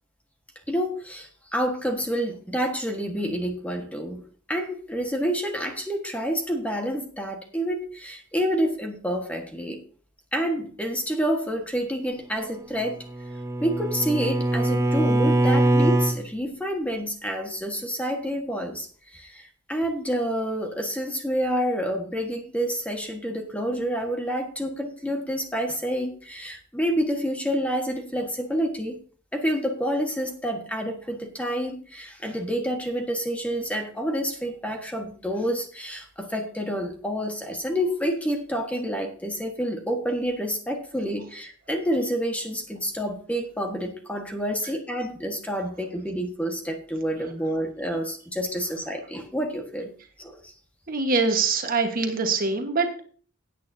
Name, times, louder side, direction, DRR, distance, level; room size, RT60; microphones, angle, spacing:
voice 1, 0.7-4.2 4.5-9.8 10.3-13.0 13.6-29.0 29.3-49.9 50.2-50.5, equal, 5° left, 3 dB, 1.4 m, -28 dB
Bowed string instrument, 12.8-16.2, right 1 dB, 15° right, 0.9 m, -22 dB
voice 2, 50.9-53.0, right 4 dB, 45° right, 5 dB, 1.4 m, -24 dB
16.5 x 8.7 x 2.7 m, 0.43 s
head